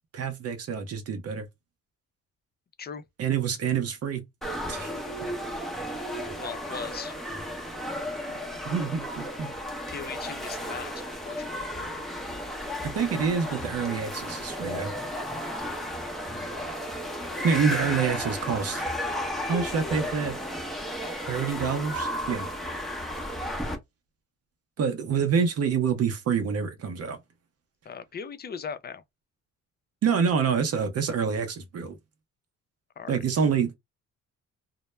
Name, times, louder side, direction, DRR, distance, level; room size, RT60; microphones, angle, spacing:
voice 1, 0.1-1.5 3.2-4.2 4.7-4.9 8.6-9.5 12.8-14.9 17.4-18.8 19.4-20.4 21.3-22.5 24.8-27.2 30.0-32.0 33.1-33.8, right 6 dB, 55° right, 0.6 m, -27 dB
sound 1, 4.4-23.8, equal, ahead, 0.7 m, -33 dB
voice 2, 6.4-7.1 9.9-11.7 27.9-29.0 33.0-33.1, left 6 dB, 35° left, 0.4 m, -38 dB
2.1 x 2.0 x 3.1 m
cardioid pair, 90°, 30 cm